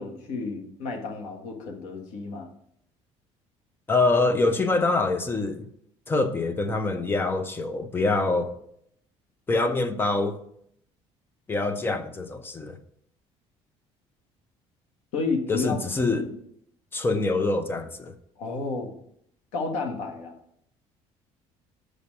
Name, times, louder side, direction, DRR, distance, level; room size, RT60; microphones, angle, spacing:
voice 1, 0.0-2.5 15.1-15.8 16.1-16.3 18.4-18.9 19.5-20.3, left 4 dB, 85° left, 1.7 m, -31 dB
voice 2, 3.9-5.7 6.1-8.5 9.5-10.4 11.5-12.8 15.5-16.3 16.9-18.1, left 3 dB, 20° left, 0.7 m, -25 dB
6.9 x 5.0 x 6.5 m
cardioid pair, 140°, 12 cm